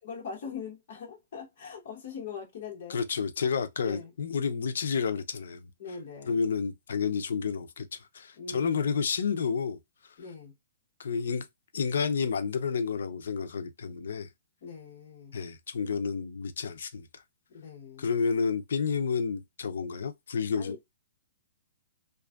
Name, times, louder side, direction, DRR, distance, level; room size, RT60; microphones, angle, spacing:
voice 1, 0.0-3.0 3.8-4.1 5.8-6.4 8.4-8.8 10.2-10.5 14.6-15.3 17.5-18.1 20.6-20.8, left 6 dB, 50° left, 0.8 m, -41 dB
voice 2, 2.9-5.7 6.3-9.8 11.0-11.5 11.7-14.3 15.3-17.2 18.0-20.9, left 5 dB, 75° left, 0.4 m, -30 dB
2.5 x 2.3 x 2.2 m
hypercardioid pair, 170°, 0 cm